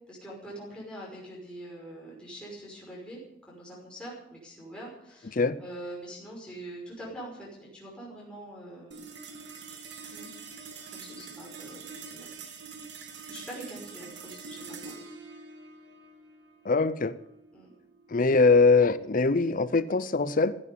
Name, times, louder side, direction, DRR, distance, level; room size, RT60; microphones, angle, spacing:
voice 1, 0.1-3.2 3.5-9.0 10.0-10.3 10.9-12.3 13.3-15.0 17.5-17.7, right 1 dB, 5° left, -5 dB, 5.7 m, -44 dB
sound 1, 8.9-19.5, right 5 dB, 55° right, 2.3 m, -45 dB
voice 2, 16.6-17.2 18.1-20.6, left 4 dB, 40° left, 15 dB, 0.6 m, -22 dB
15.0 x 10.0 x 9.5 m, 0.78 s
head